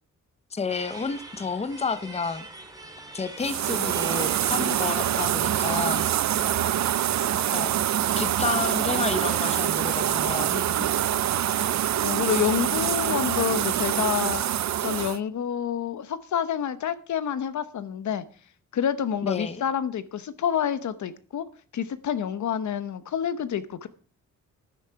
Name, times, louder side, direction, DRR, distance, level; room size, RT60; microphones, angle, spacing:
voice 1, 0.5-2.5 3.1-6.0 7.5-7.7 8.2-10.6 19.2-19.6, left 5 dB, 20° left, 0.8 m, -30 dB
sound 1, 0.7-7.1, right 2 dB, 10° right, 2.4 m, -44 dB
sound 2, 3.4-15.2, right 11 dB, 65° right, 0.6 m, -25 dB
voice 2, 12.0-14.5 14.8-18.2 18.7-21.4 21.7-23.9, left 9 dB, 70° left, 1.0 m, -28 dB
13.5 x 10.0 x 4.7 m
wide cardioid pair, 120°, 31 cm